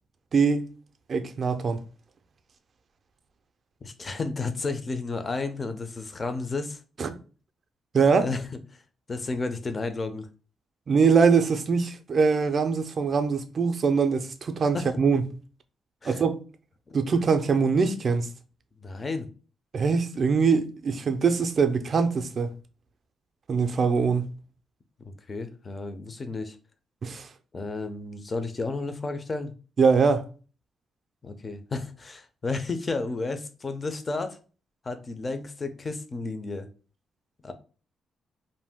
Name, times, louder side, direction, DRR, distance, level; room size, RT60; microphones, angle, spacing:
voice 1, 0.3-0.6 1.1-1.8 7.0-7.2 7.9-8.3 10.9-15.2 16.1-16.4 16.9-18.3 19.7-22.5 23.5-24.3 27.0-27.3 29.8-30.3, right 5 dB, 40° right, 0.4 m, -23 dB
voice 2, 3.8-6.8 8.2-8.4 9.1-10.3 14.7-14.9 16.0-16.2 16.9-17.0 18.8-19.3 25.0-26.6 27.5-29.5 31.2-34.4 34.8-36.7 37.4-37.5, left 3 dB, 25° left, 0.4 m, -32 dB
2.6 x 2.2 x 3.4 m
cardioid pair, 130°, 0 cm